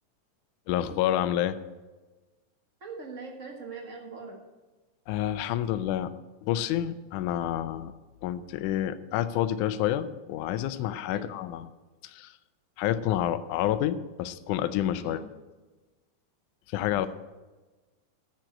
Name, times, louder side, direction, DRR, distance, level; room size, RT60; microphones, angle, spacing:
voice 1, 0.7-1.6 5.1-6.1 6.4-7.9 8.2-11.7 12.0-12.4 12.8-15.2 16.7-17.1, left 12 dB, 80° left, 11 dB, 2.1 m, -28 dB
voice 2, 2.8-4.4 11.1-11.3 15.0-15.3 16.7-17.1, right 4 dB, 40° right, 1 dB, 1.1 m, -42 dB
10.5 x 7.4 x 8.9 m, 1.2 s
omnidirectional pair, 3.7 m